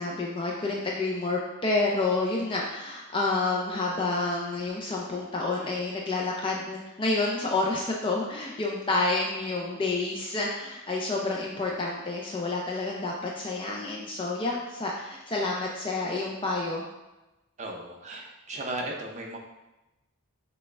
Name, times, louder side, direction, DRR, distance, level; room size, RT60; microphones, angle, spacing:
voice 1, 0.0-16.8, left 3 dB, 25° left, -2 dB, 0.4 m, -29 dB
voice 2, 17.6-19.4, right 2 dB, 35° right, 0 dB, 0.7 m, -36 dB
6.3 x 2.2 x 3.2 m, 1.0 s
head